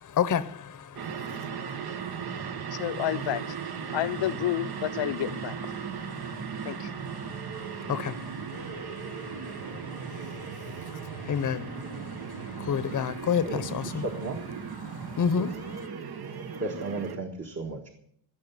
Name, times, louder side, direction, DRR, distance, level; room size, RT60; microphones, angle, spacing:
voice 1, 0.0-2.8 3.9-4.0 5.8-14.0 14.8-15.9, left 7 dB, 45° left, 0.8 m, -33 dB
sound 1, 1.0-17.2, right 7 dB, 60° right, 1.1 m, -37 dB
voice 2, 2.7-3.6 3.9-5.8 6.6-7.0, left 13 dB, 80° left, 0.7 m, -30 dB
voice 3, 13.4-14.4 15.4-15.5 16.6-17.9, right 2 dB, 35° right, 1.6 m, -34 dB
16.0 x 7.0 x 9.5 m
wide cardioid pair, 165°, 44 cm